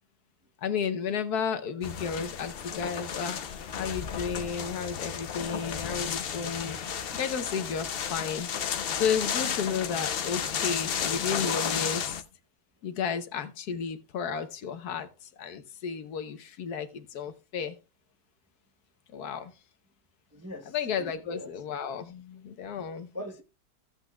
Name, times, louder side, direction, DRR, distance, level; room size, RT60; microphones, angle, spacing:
voice 1, 0.6-3.4 3.7-6.8 7.1-8.5 8.9-12.2 12.8-15.1 15.4-17.8 19.1-19.5 20.7-23.1, left 6 dB, 70° left, 1.4 m, -33 dB
sound 1, 1.8-12.2, left 7 dB, 55° left, 0.6 m, -33 dB
voice 2, 20.3-21.5 23.1-23.4, left 1 dB, 15° right, 0.5 m, -42 dB
15.5 x 8.1 x 2.3 m
omnidirectional pair, 1.8 m